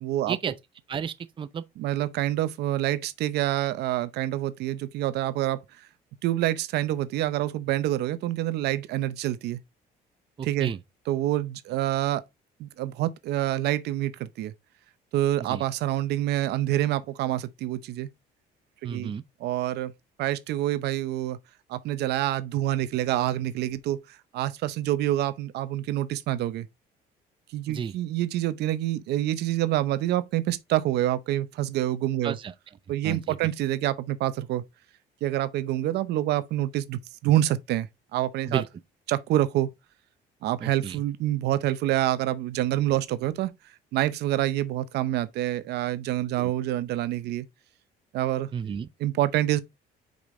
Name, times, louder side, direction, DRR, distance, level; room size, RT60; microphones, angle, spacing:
voice 1, 0.0-0.4 1.8-5.6 6.2-9.6 10.4-10.7 11.1-12.2 12.6-14.5 15.1-18.1 18.8-19.1 19.4-19.9 20.2-21.4 21.7-26.7 27.5-32.4 32.9-34.6 35.2-38.6 39.1-39.7 40.4-43.5 43.9-47.5 48.1-48.5 49.0-49.6, right 14 dB, 75° right, 0.7 m, -27 dB
voice 2, 0.9-1.6 10.4-10.8 15.5-15.6 18.8-19.2 27.7-27.9 32.2-32.5 33.0-33.5 38.5-38.7 40.6-41.0 46.4-46.5 48.5-48.9, right 7 dB, 30° right, 0.5 m, -32 dB
5.3 x 5.0 x 3.8 m
cardioid pair, 110°, 17 cm